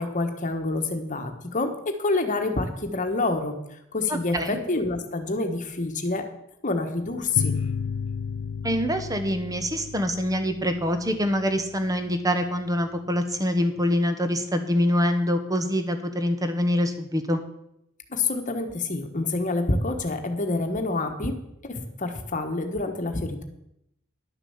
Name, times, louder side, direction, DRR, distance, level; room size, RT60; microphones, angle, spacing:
voice 1, 0.0-1.7 2.0-3.5 3.9-6.2 6.6-7.5 18.1-21.3 21.6-23.4, left 3 dB, 35° left, 5 dB, 1.3 m, -27 dB
voice 2, 4.1-4.6 8.6-17.4, equal, 15° right, 8 dB, 1.0 m, -25 dB
sound 1, 7.4-12.5, left 5 dB, 80° left, 0.4 m, -33 dB
11.0 x 7.0 x 7.1 m, 0.81 s
head